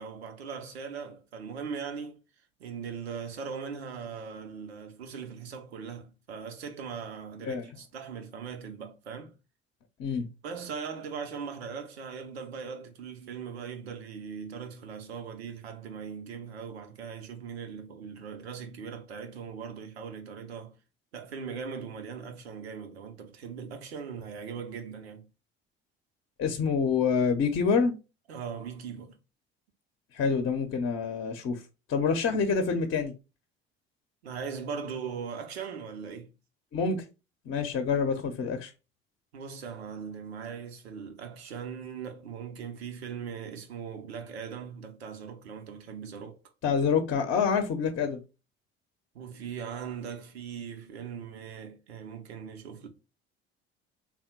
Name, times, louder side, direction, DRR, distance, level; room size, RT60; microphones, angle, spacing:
voice 1, 0.0-2.2 2.6-9.3 10.4-20.8 21.1-25.3 28.3-29.2 34.2-36.3 39.3-46.4 49.1-52.9, right 6 dB, 85° right, 0.7 m, -40 dB
voice 2, 26.4-27.9 30.1-31.6 31.9-33.1 36.7-37.0 37.5-38.7 46.6-48.2, left 5 dB, 40° left, 0.7 m, -27 dB
3.5 x 2.2 x 4.3 m
hypercardioid pair, 60°, 31 cm